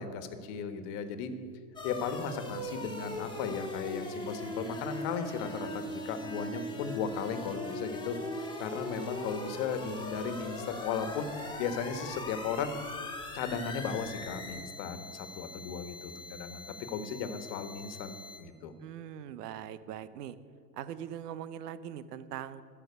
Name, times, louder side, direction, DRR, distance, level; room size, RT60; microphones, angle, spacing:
voice 1, 0.0-1.3 1.8-8.2 8.6-12.7 13.3-18.7, left 6 dB, 55° left, 9 dB, 1.5 m, -36 dB
sound 1, 1.8-18.4, left 1 dB, 10° left, 2.1 m, -40 dB
voice 2, 18.8-20.4 20.8-22.6, right 10 dB, 80° right, 15 dB, 0.9 m, -41 dB
13.0 x 5.9 x 9.6 m, 2.3 s
hypercardioid pair, 105°, 47 cm